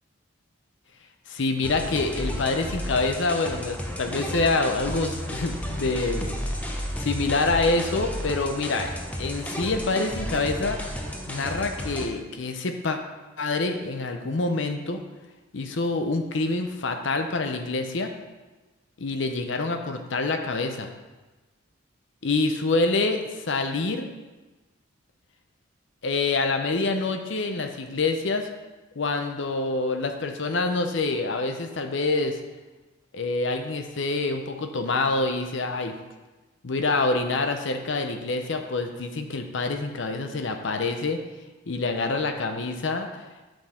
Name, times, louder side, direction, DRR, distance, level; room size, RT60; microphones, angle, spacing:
voice 1, 1.3-6.3 7.0-8.9 9.2-10.8 11.3-13.0 13.4-15.0 15.5-18.1 19.0-20.9 22.2-24.1 26.0-28.5 29.0-32.4 33.1-36.0 36.6-41.2 41.7-43.1, left 3 dB, 60° left, 5 dB, 0.7 m, -26 dB
sound 1, 1.6-12.1, equal, 5° left, 0.6 m, -32 dB
7.0 x 6.1 x 4.3 m, 1.2 s
head